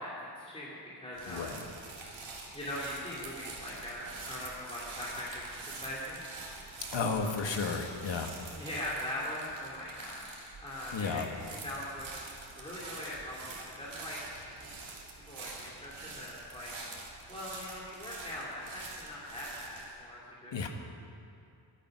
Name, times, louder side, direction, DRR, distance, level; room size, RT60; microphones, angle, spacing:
voice 1, 0.0-1.6 2.5-6.7 7.1-7.2 8.6-11.2 11.6-12.1 12.6-14.7 15.3-16.7 17.0-20.7, left 1 dB, 15° left, -7 dB, 2.6 m, -41 dB
sound 1, 1.1-19.9, right 3 dB, 85° right, 2.8 m, -46 dB
voice 2, 1.3-1.6 6.9-8.3 10.0-10.1 10.9-11.3 20.5-20.7, left 4 dB, 75° left, 4 dB, 1.6 m, -33 dB
23.5 x 10.0 x 6.1 m, 2.6 s
wide cardioid pair, 170°, 45 cm